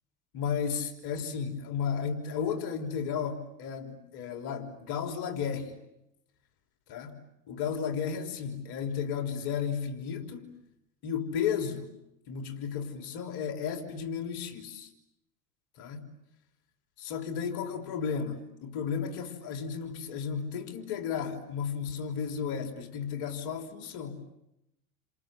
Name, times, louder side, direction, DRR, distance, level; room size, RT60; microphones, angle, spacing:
voice 1, 0.3-5.8 6.9-7.2 7.5-10.5 11.0-11.9 12.3-14.9 15.8-16.0 17.0-24.1, left 7 dB, 55° left, 5 dB, 3.6 m, -33 dB
29.5 x 27.0 x 7.4 m, 0.84 s
hypercardioid pair, 95°, 44 cm